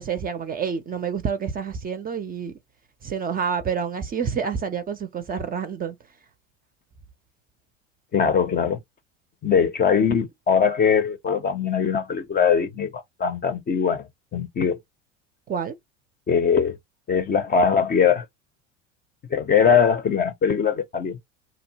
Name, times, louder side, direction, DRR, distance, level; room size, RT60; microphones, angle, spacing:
voice 1, 0.0-2.5 3.0-6.0 15.5-15.7, right 6 dB, 25° right, 0.5 m, -28 dB
voice 2, 8.1-8.8 9.4-14.8 16.3-16.8 17.1-18.3 19.3-21.2, left 6 dB, 25° left, 0.6 m, -21 dB
2.7 x 2.1 x 2.7 m
hypercardioid pair, 80°, 37 cm